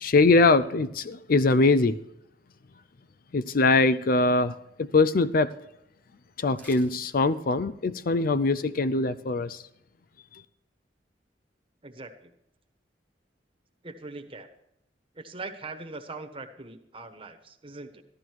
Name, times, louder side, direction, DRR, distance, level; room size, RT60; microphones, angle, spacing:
voice 1, 0.0-2.0 3.3-5.5 6.4-9.6 10.3-10.4, left 3 dB, 55° left, 0.5 m, -22 dB
sound 1, 6.5-7.1 7.5-7.6, equal, 10° left, 1.6 m, -50 dB
voice 2, 11.8-12.3 13.8-14.5 15.1-18.0, right 3 dB, 30° right, 1.3 m, -41 dB
14.5 x 12.5 x 4.7 m
head